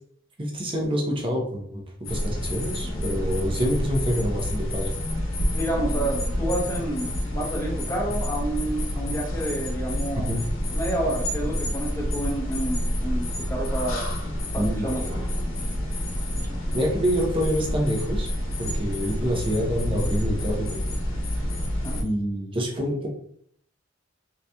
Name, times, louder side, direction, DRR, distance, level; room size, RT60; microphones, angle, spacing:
voice 1, 0.4-1.8 2.1-5.0 10.3-10.4 14.6-14.9 16.7-18.3 18.6-20.8 22.0-23.1, equal, 25° right, 0 dB, 0.7 m, -26 dB
sound 1, 2.0-22.0, equal, 90° left, 0.9 m, -28 dB
voice 2, 5.5-10.4 10.7-14.2 14.5-15.1 21.8-22.0, right 1 dB, 15° left, -2 dB, 0.8 m, -29 dB
3.8 x 2.9 x 2.2 m, 0.65 s
head